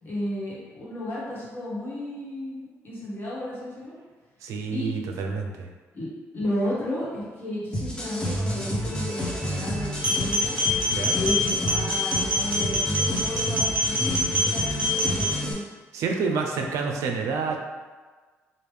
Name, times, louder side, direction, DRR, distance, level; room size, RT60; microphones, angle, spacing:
voice 1, 0.0-3.9 4.7-4.9 5.9-6.1 6.3-10.6 11.1-15.6, left 1 dB, 40° left, -7 dB, 1.4 m, -33 dB
voice 2, 4.4-5.7 10.9-11.2 15.9-17.6, right 5 dB, 85° right, 2 dB, 0.4 m, -28 dB
sound 1, 7.7-15.5, equal, 15° left, 0.7 m, -29 dB
sound 2, 10.0-15.3, left 1 dB, 20° right, 1.0 m, -25 dB
3.3 x 2.4 x 3.2 m, 1.4 s
cardioid pair, 100°, 5 cm